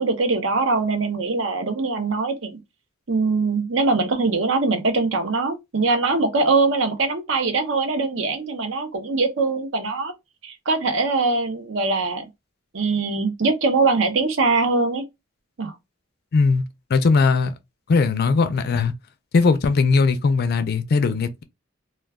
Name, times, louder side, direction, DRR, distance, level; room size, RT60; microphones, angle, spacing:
voice 1, 0.0-2.6 3.1-10.1 10.4-12.2 12.7-15.1 15.6-15.7, right 3 dB, 65° right, 0.6 m, -22 dB
voice 2, 16.3-16.6 16.9-17.5 17.9-18.9 19.3-21.4, left 4 dB, 50° left, 0.4 m, -19 dB
2.2 x 2.2 x 3.4 m
head